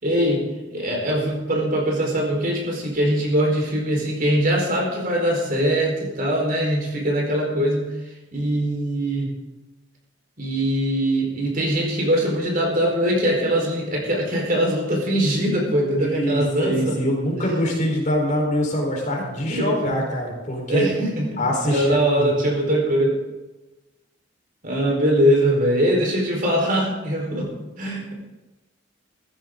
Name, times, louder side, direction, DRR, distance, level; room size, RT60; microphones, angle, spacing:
voice 1, 0.0-0.4 0.7-7.9 8.3-9.3 10.4-17.0 19.5-19.9 20.7-23.1 24.6-27.5 27.8-28.1, equal, 50° right, -1 dB, 4.6 m, -22 dB
voice 2, 15.9-20.9 21.4-22.3, equal, 40° left, 0 dB, 4.4 m, -24 dB
15.5 x 15.0 x 3.9 m, 1.1 s
head